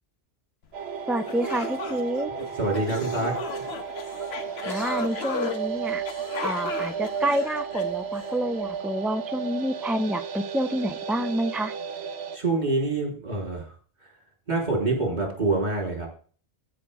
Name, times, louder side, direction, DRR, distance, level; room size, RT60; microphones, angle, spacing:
sound 1, 0.7-12.4, right 7 dB, 80° right, 1.1 m, -33 dB
sound 2, 0.9-1.0 1.3-8.4, left 5 dB, 75° left, 1.3 m, -35 dB
voice 1, 1.1-2.3 4.7-6.0 6.4-11.7, right 1 dB, ahead, 9 dB, 0.3 m, -28 dB
voice 2, 2.6-3.4 12.3-13.7 14.5-16.1, right 2 dB, 45° right, -1 dB, 4.0 m, -26 dB
14.5 x 6.3 x 3.5 m, 0.41 s
omnidirectional pair, 1.1 m